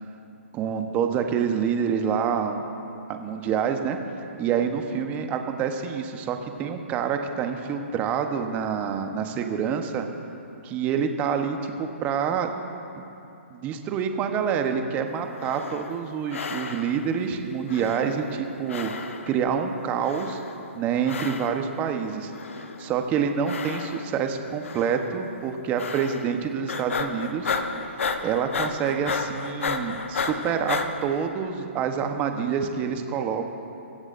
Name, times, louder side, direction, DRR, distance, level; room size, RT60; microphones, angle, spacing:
voice 1, 0.5-2.6 3.1-4.0 4.4-10.1 10.6-12.5 13.5-18.9 19.3-20.4 20.7-22.3 22.8-27.5 28.2-33.5, right 7 dB, 20° right, 5 dB, 1.1 m, -27 dB
Man breathing regularly then faster, 15.3-16.0 16.3-17.1 17.7-18.4 18.7-19.4 20.0-20.6 21.0-21.7 22.3-22.9 23.4-24.2 24.6-25.1 25.8-26.4 26.7-30.9, left 5 dB, 75° left, 1.1 m, -32 dB
22.5 x 16.0 x 2.6 m, 2.9 s
hypercardioid pair, 140°, 7 cm